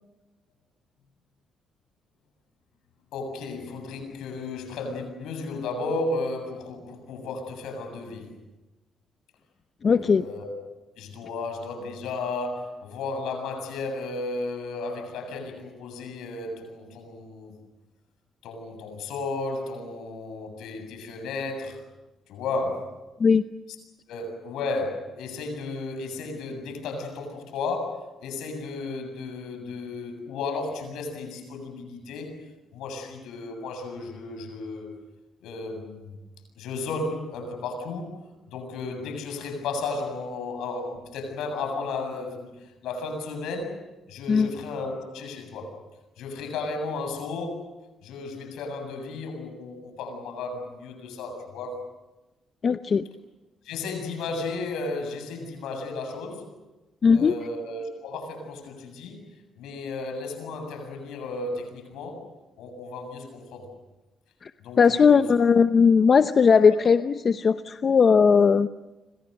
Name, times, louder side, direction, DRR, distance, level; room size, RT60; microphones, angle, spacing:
voice 1, 3.1-8.3 10.0-10.5 11.0-17.5 18.4-21.8 22.3-23.0 24.1-32.4 32.7-34.9 35.4-36.1 36.6-38.2 38.5-43.8 44.1-45.8 46.2-47.7 48.0-51.8 53.6-56.5 57.1-59.2 59.6-62.3 62.6-63.7 64.6-65.2, left 3 dB, 85° left, 7.5 m, -34 dB
voice 2, 9.8-10.3 23.2-23.4 44.3-44.5 52.6-53.0 57.0-57.3 64.4-64.5 64.8-68.7, left 6 dB, 45° left, 0.8 m, -18 dB
29.5 x 25.5 x 6.6 m
cardioid pair, 90°, 0 cm